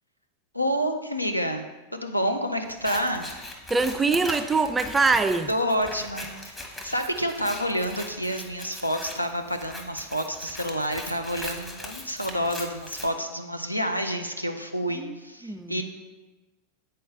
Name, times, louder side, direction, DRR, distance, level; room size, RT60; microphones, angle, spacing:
voice 1, 0.5-1.7 1.9-3.3 5.5-15.8, equal, 90° left, 6 dB, 0.5 m, -29 dB
Scissors, 2.7-13.1, left 1 dB, 10° left, 0.9 m, -40 dB
voice 2, 3.7-5.5 14.9-15.2 15.4-15.8, right 4 dB, 15° right, 10 dB, 0.3 m, -23 dB
8.4 x 4.3 x 3.6 m, 1.2 s
figure-of-eight pair, 90°, 0 cm